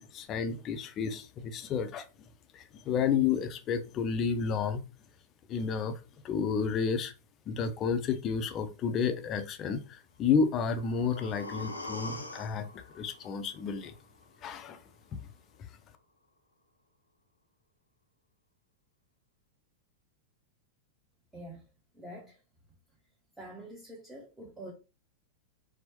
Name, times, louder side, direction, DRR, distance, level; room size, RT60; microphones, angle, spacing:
voice 1, 0.0-2.0 2.6-4.8 5.5-5.9 6.2-7.1 7.5-9.8 10.2-12.7 12.9-13.9 14.4-14.8, left 6 dB, 30° left, 0.5 m, -31 dB
sound 1, 10.4-14.4 14.8-14.9, left 2 dB, 85° left, 0.5 m, -44 dB
voice 2, 21.3-21.7 21.9-22.4 23.4-24.7, right 1 dB, 5° right, 0.8 m, -46 dB
4.2 x 2.1 x 3.0 m
figure-of-eight pair, 90°, 0 cm